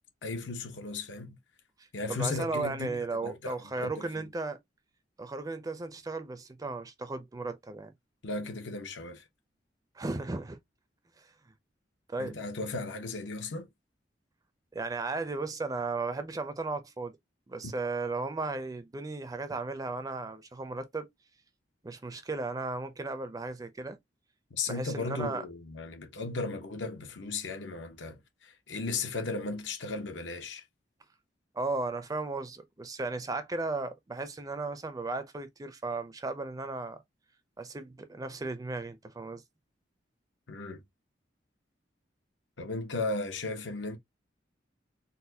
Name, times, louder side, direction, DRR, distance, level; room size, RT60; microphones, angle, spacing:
voice 1, 0.2-1.4 1.9-4.2 8.2-9.2 12.2-13.7 24.5-30.6 40.5-40.8 42.6-44.0, left 3 dB, 80° left, 0.8 m, -36 dB
voice 2, 2.1-4.6 5.2-7.9 10.0-10.6 11.2-11.3 12.1-12.4 14.7-17.1 17.5-21.1 21.8-24.0 24.7-25.4 31.5-37.0 37.6-39.4, right 3 dB, 20° right, 0.4 m, -35 dB
4.0 x 2.2 x 2.6 m
head